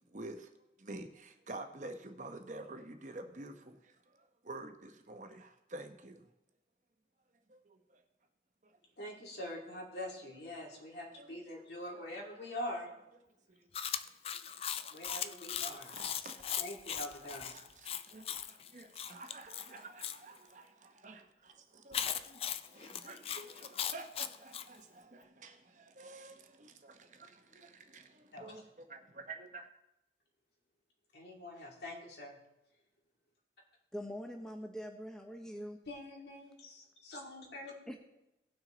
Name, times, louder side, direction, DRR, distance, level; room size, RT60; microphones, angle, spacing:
voice 1, 0.1-0.5 0.8-6.3 7.5-8.0 8.6-8.8 11.1-11.4 11.9-12.1 13.5-13.7 14.2-14.9 15.7-16.6 16.9-29.7, right 2 dB, 45° right, 6 dB, 0.9 m, -50 dB
voice 2, 9.0-12.9 14.3-14.4 14.9-15.9 16.6-17.5 28.3-28.5 31.1-32.4 35.9-37.9, left 1 dB, 70° left, -1 dB, 2.7 m, -44 dB
Chewing mastication, 13.7-20.2 21.9-24.7, left 9 dB, 35° left, 0.3 m, -39 dB
voice 3, 33.9-35.8 37.9-38.0, equal, 5° left, 3 dB, 0.7 m, -43 dB
18.0 x 6.1 x 3.9 m, 0.89 s
head